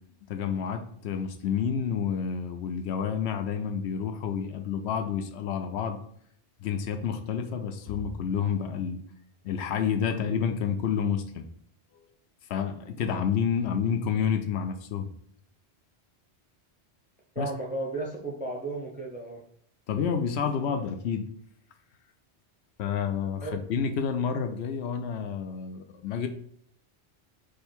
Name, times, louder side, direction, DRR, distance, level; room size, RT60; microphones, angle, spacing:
voice 1, 0.3-6.0 6.6-9.0 9.4-11.4 12.5-15.1 17.4-17.5 19.9-21.3 22.8-26.3, left 7 dB, 75° left, 7 dB, 0.8 m, -29 dB
voice 2, 17.4-19.4 23.4-23.6, right 2 dB, 15° right, 1 dB, 0.3 m, -34 dB
4.9 x 2.3 x 4.4 m, 0.64 s
omnidirectional pair, 1.1 m